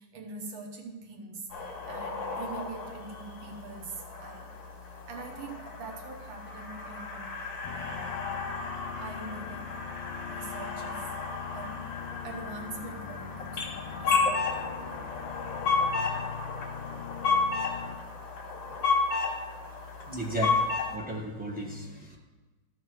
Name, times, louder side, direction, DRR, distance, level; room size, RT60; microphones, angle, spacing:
voice 1, 0.0-4.6 5.1-8.4 8.9-9.8 10.3-11.1 11.5-11.9 12.2-15.1, right 3 dB, 70° right, 2 dB, 1.7 m, -44 dB
sound 1, 1.5-21.0, left 4 dB, 60° left, 2.1 m, -33 dB
sound 2, 7.6-18.0, left 9 dB, 80° left, 0.9 m, -42 dB
voice 2, 20.1-22.2, right 1 dB, 5° right, -2 dB, 1.0 m, -34 dB
13.0 x 4.4 x 6.2 m, 1.3 s
omnidirectional pair, 2.3 m